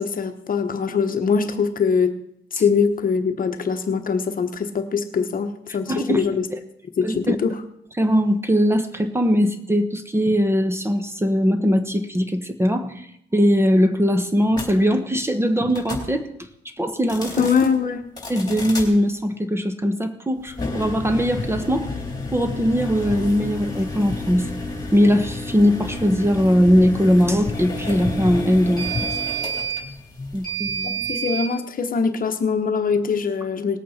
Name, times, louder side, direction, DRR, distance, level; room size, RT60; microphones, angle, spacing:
voice 1, 0.0-2.2 2.5-6.5 7.0-7.6 17.4-18.0 31.0-33.8, left 5 dB, 45° left, 7 dB, 1.1 m, -22 dB
voice 2, 5.9-6.2 6.5-6.6 7.0-7.4 8.0-16.3 16.8-17.5 18.3-21.9 22.3-24.5 24.9-28.9 30.3-31.0, equal, 10° right, 9 dB, 1.1 m, -20 dB
sound 1, 14.5-14.7 15.7-16.1 17.0-17.7 18.2-18.9 20.5-31.5, equal, 20° left, 3.5 m, -30 dB
19.0 x 8.4 x 4.3 m, 0.76 s
cardioid pair, 90°, 20 cm